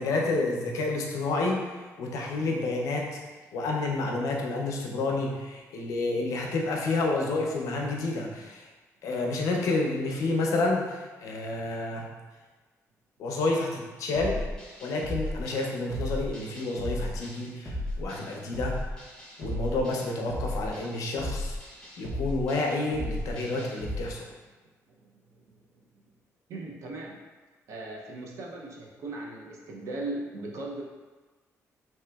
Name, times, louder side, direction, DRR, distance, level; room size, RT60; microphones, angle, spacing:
voice 1, 0.0-3.2 3.5-8.7 9.0-12.1 13.2-14.4 14.8-18.8 19.4-21.6 22.0-24.3, left 2 dB, 75° left, 0 dB, 0.5 m, -29 dB
sound 1, 14.1-24.0, left 1 dB, 15° left, 0.6 m, -35 dB
voice 2, 24.9-26.0 26.5-27.2 27.7-30.8, right 2 dB, 60° right, -1 dB, 0.5 m, -39 dB
3.2 x 2.8 x 2.2 m, 1.3 s
cardioid pair, 175°, 6 cm